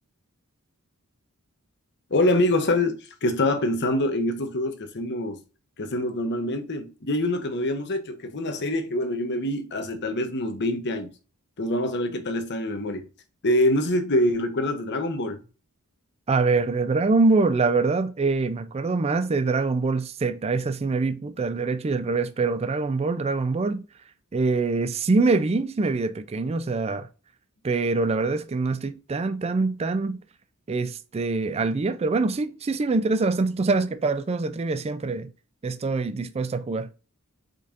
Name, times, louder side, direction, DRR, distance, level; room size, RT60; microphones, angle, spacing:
voice 1, 2.1-5.4 5.8-11.1 11.6-13.1 13.4-15.4, left 1 dB, 50° left, 0.9 m, -25 dB
voice 2, 16.3-23.8 24.3-27.1 27.6-30.2 30.7-35.3 35.6-36.9, right 3 dB, 30° right, 0.4 m, -24 dB
5.1 x 4.2 x 2.4 m
head